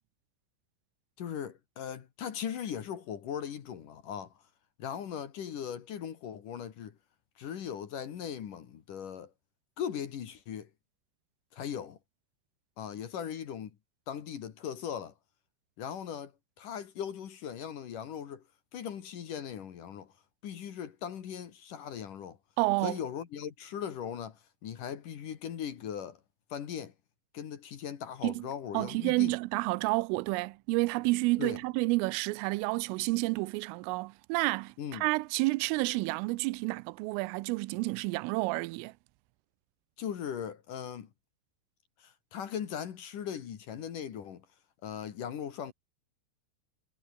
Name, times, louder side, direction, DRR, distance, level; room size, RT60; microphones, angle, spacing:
voice 1, 1.2-4.3 4.8-7.0 7.4-9.3 9.8-10.7 11.5-12.0 12.8-13.8 14.1-15.1 15.8-16.3 16.6-18.4 18.7-20.1 20.4-22.4 22.8-26.2 26.5-26.9 27.3-29.4 31.4-31.6 34.8-35.1 40.0-41.1 42.0-44.4 44.8-45.7, left 8 dB, 55° left, 2.8 m, -39 dB
voice 2, 22.6-23.0 28.2-28.5 28.7-38.9, right 23 dB, 85° right, 3.2 m, -30 dB
omnidirectional pair, 5.8 m